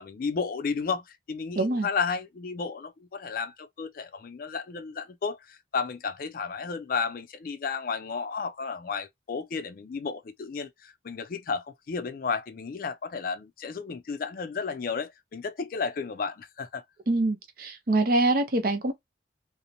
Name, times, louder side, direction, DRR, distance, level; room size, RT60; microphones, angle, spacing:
voice 1, 0.0-16.8, left 5 dB, 50° left, 0.4 m, -33 dB
voice 2, 1.6-1.9 17.1-18.9, right 2 dB, 55° right, 0.6 m, -24 dB
2.8 x 2.0 x 2.5 m
head